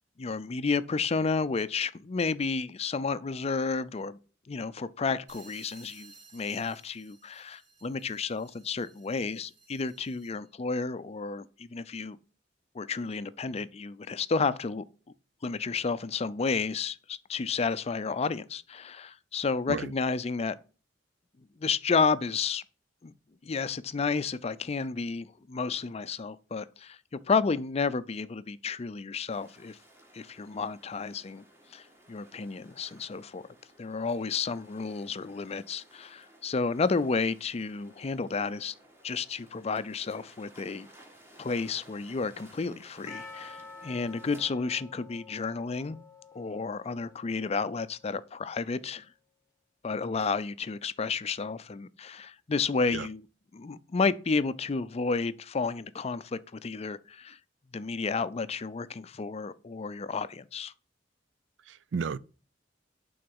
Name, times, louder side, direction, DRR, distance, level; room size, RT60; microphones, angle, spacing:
voice 1, 0.2-4.2 4.5-12.2 12.7-14.8 15.4-20.6 21.6-22.6 23.0-23.1 23.4-27.0 27.3-29.8 30.1-31.4 31.7-33.4 33.8-38.7 39.0-40.9 41.4-46.0 46.3-49.1 49.8-53.2 53.5-57.4 57.7-60.7, left 4 dB, 35° left, 0.4 m, -31 dB
sound 1, 5.3-10.5, right 4 dB, 45° right, 2.4 m, -56 dB
sound 2, 29.3-44.4, right 1 dB, 15° right, 1.7 m, -57 dB
Percussion, 43.1-48.0, left 4 dB, 20° left, 1.1 m, -49 dB
voice 2, 61.7-62.2, right 5 dB, 85° right, 0.4 m, -33 dB
8.8 x 3.9 x 5.3 m
head